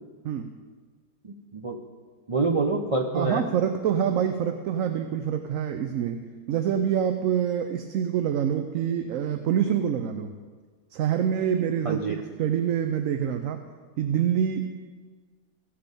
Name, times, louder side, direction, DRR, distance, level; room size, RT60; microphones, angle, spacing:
voice 1, 1.2-1.8 2.3-3.5 11.8-12.2, right 3 dB, 50° right, 1 dB, 0.4 m, -26 dB
voice 2, 3.1-10.3 10.9-13.6 14.0-14.8, right 9 dB, 65° right, 8 dB, 0.9 m, -26 dB
15.5 x 6.8 x 5.3 m, 1.5 s
omnidirectional pair, 1.7 m